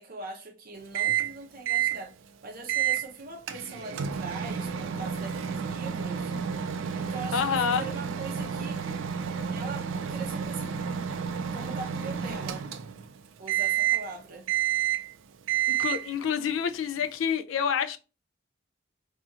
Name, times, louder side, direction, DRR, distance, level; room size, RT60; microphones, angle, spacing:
voice 1, 0.0-2.1 2.4-6.4 7.0-8.8 9.5-10.7 11.5-12.7 13.4-14.5, right 3 dB, 50° right, 0.7 m, -41 dB
Microwave oven, 1.0-1.4 1.7-2.0 2.7-3.0 3.5-13.1 13.5-14.1 14.5-15.1 15.5-16.1, right 8 dB, 80° right, 0.3 m, -30 dB
voice 2, 7.3-7.9 15.7-18.0, left 7 dB, 80° left, 0.3 m, -28 dB
2.7 x 2.7 x 2.4 m
head